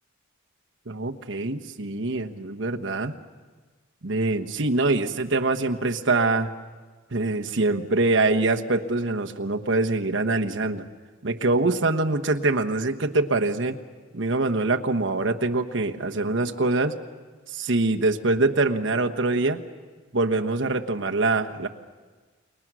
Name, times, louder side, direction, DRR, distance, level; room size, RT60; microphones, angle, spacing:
voice 1, 0.9-3.1 4.0-6.5 7.1-10.8 11.2-13.8 14.1-17.0 17.5-19.6 20.1-21.7, right 2 dB, 65° right, 4 dB, 1.2 m, -24 dB
29.0 x 22.5 x 6.3 m, 1.4 s
head